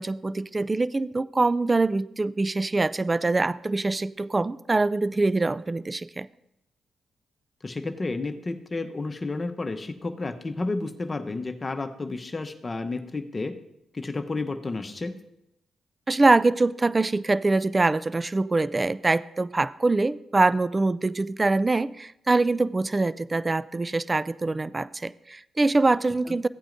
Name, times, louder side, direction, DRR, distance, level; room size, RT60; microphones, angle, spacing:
voice 1, 0.0-6.3 16.1-26.5, right 3 dB, 30° right, 18 dB, 0.3 m, -24 dB
voice 2, 7.6-13.6 13.9-15.1 26.3-26.4, left 3 dB, 35° left, 7 dB, 0.9 m, -31 dB
15.5 x 8.8 x 2.6 m, 0.83 s
supercardioid pair, 45°, 0 cm